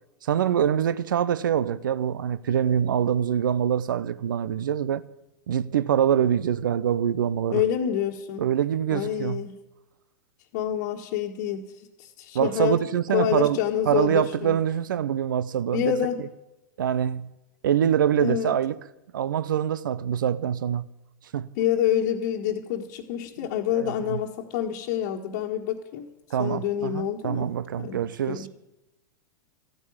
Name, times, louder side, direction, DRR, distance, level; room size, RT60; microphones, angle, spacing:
voice 1, 0.2-5.0 5.5-7.6 8.4-9.5 12.3-13.6 13.9-15.9 16.8-17.3 17.6-18.8 19.1-20.9 21.3-21.5 23.7-24.2 26.3-28.5, right 9 dB, 70° right, 0.7 m, -24 dB
voice 2, 7.5-8.5 8.9-9.6 10.5-11.7 12.2-12.8 13.1-14.6 15.7-16.2 18.2-18.5 21.6-26.1 26.4-27.5 27.8-28.5, left 10 dB, 55° left, 1.5 m, -27 dB
14.0 x 9.3 x 8.9 m
hypercardioid pair, 100°, 11 cm